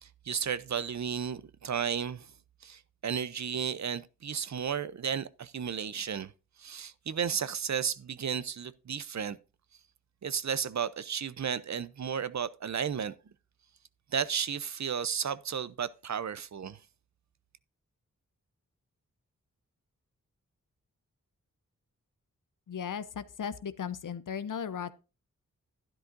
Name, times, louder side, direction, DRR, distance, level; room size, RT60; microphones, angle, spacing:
voice 1, 0.0-2.3 2.6-6.3 6.6-9.4 10.2-13.1 14.1-16.8, right 7 dB, 60° right, 0.7 m, -33 dB
voice 2, 22.7-24.9, left 7 dB, 75° left, 0.7 m, -36 dB
11.5 x 10.5 x 2.6 m
cardioid pair, 40°, 32 cm